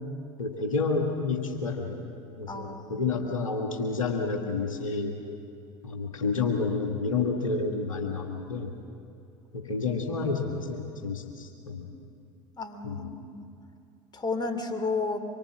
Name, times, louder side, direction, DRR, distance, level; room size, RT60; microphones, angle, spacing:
voice 1, 0.4-2.1 2.4-5.2 5.8-8.7 9.5-11.9 12.8-13.1, left 4 dB, 85° left, 3 dB, 2.0 m, -30 dB
voice 2, 2.5-3.1 12.6-13.5 14.1-15.2, left 3 dB, 25° left, 7 dB, 2.8 m, -32 dB
25.0 x 23.0 x 7.4 m, 2.5 s
figure-of-eight pair, 70°, 17 cm